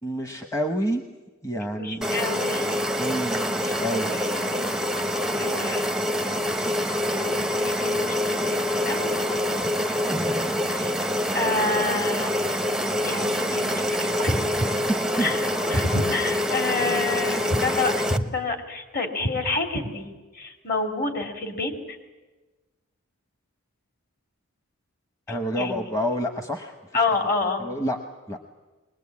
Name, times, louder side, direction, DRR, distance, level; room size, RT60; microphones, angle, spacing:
voice 1, 0.0-1.0 1.4-2.1 3.0-4.1 15.2-15.3 25.3-27.0 27.6-28.0 28.3-28.4, equal, 15° left, 5 dB, 1.0 m, -28 dB
voice 2, 1.8-2.8 4.1-4.7 5.3-5.9 7.1-8.1 8.5-9.2 10.0-10.2 10.6-10.9 11.3-12.3 13.0-13.8 14.2-14.7 15.2-20.1 20.3-22.0 25.5-25.9 26.9-27.7, left 2 dB, 45° left, 5 dB, 2.7 m, -28 dB
sound 1, 2.0-18.2, left 1 dB, ahead, 0.6 m, -26 dB
22.0 x 20.0 x 8.5 m, 1.2 s
head